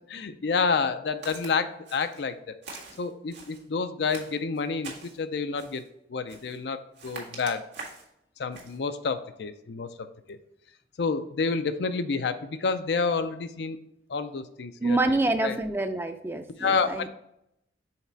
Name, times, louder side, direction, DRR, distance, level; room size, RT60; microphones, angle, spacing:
voice 1, 0.1-2.5 3.0-5.8 6.1-7.6 8.4-10.4 11.0-13.8 14.1-15.6 16.6-17.0, left 4 dB, 75° left, 10 dB, 0.5 m, -29 dB
Walk footsteps, 1.2-1.5 1.9-2.3 2.6-3.6 4.1-5.2 5.6-5.9 6.3-6.6 6.9-8.1 8.5-8.8, right 4 dB, 85° right, 1.7 m, -44 dB
voice 2, 14.8-17.1, right 2 dB, 15° right, 7 dB, 0.4 m, -27 dB
5.7 x 4.1 x 4.5 m, 0.79 s
head